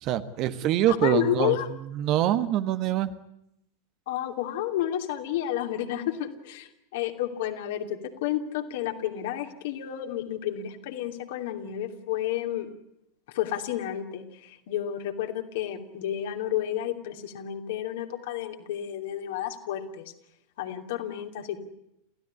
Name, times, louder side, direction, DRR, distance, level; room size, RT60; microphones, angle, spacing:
voice 1, 0.0-1.5 1.9-3.1, right 12 dB, 40° right, 12 dB, 1.4 m, -24 dB
voice 2, 0.9-1.7 4.1-12.7 13.3-20.1 20.6-21.6, left 11 dB, 55° left, 5 dB, 2.8 m, -31 dB
28.5 x 16.0 x 9.8 m, 0.83 s
figure-of-eight pair, 90°, 0 cm